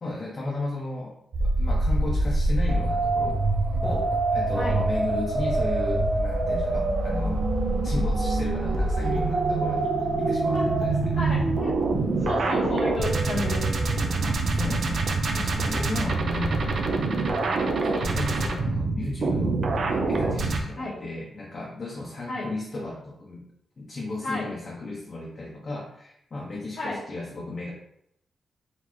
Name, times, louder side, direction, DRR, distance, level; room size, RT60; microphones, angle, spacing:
voice 1, 0.0-3.4 3.8-7.5 7.8-11.2 14.2-16.6 17.8-19.6 19.9-23.4 23.8-27.7, left 2 dB, 40° left, -3 dB, 0.7 m, -34 dB
sound 1, 1.3-20.6, right 2 dB, 55° right, 0.6 m, -25 dB
voice 2, 11.1-11.7 12.2-13.7 20.7-21.0 22.3-22.5 24.2-24.5 26.8-27.0, left 2 dB, 80° left, -9 dB, 1.3 m, -31 dB
4.1 x 3.3 x 3.1 m, 0.76 s
wide cardioid pair, 155°, 0 cm